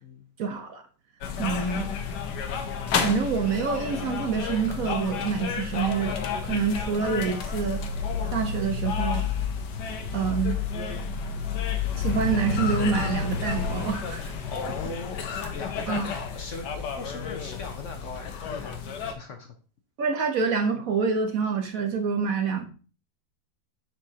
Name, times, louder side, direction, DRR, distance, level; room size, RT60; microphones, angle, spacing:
voice 1, 0.4-0.8 1.4-1.9 2.9-7.8 8.3-9.3 10.1-10.6 11.9-14.3 15.9-16.0 20.0-22.7, right 5 dB, 55° right, 5 dB, 1.2 m, -27 dB
sound 1, 1.2-19.1, left 6 dB, 75° left, 1.4 m, -31 dB
voice 2, 14.4-15.2 15.5-19.5, left 3 dB, 55° left, 4 dB, 1.0 m, -39 dB
7.8 x 6.2 x 2.8 m, 0.37 s
omnidirectional pair, 1.9 m